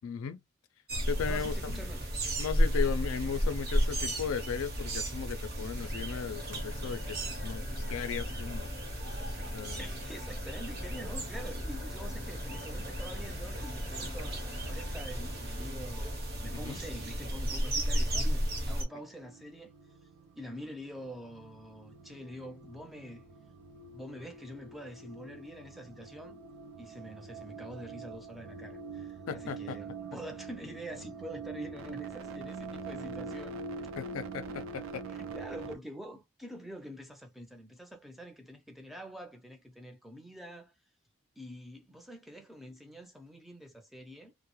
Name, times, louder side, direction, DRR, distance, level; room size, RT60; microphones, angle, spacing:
voice 1, 0.0-0.4 1.1-1.9 2.4-8.7 9.5-9.8 16.6-16.8 29.3-29.8 34.0-35.0, left 7 dB, 85° left, 0.3 m, -36 dB
sound 1, 0.9-18.9, equal, 50° right, 0.8 m, -34 dB
voice 2, 1.2-2.1 9.8-16.2 16.4-19.7 20.4-23.3 23.9-26.4 26.8-33.6 35.1-40.7 41.4-44.3, equal, ahead, 0.4 m, -46 dB
sound 2, 5.7-16.1, left 3 dB, 45° left, 0.6 m, -48 dB
sound 3, 16.8-35.8, right 4 dB, 80° right, 0.4 m, -45 dB
2.2 x 2.0 x 3.0 m
head